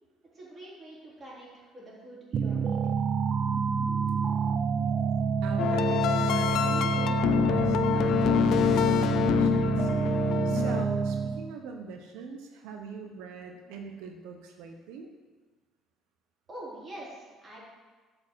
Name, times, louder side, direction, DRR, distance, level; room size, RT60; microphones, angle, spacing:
voice 1, 0.3-3.0 16.5-17.6, right 1 dB, 25° right, -7 dB, 3.7 m, -45 dB
sound 1, 2.3-11.6, right 6 dB, 40° right, 0.4 m, -28 dB
voice 2, 5.4-9.9 10.2-15.1, right 4 dB, 90° right, 3 dB, 0.9 m, -42 dB
sound 2, 5.6-10.8, left 9 dB, 55° left, 0.4 m, -26 dB
11.5 x 5.3 x 6.2 m, 1.4 s
cardioid pair, 155°, 0 cm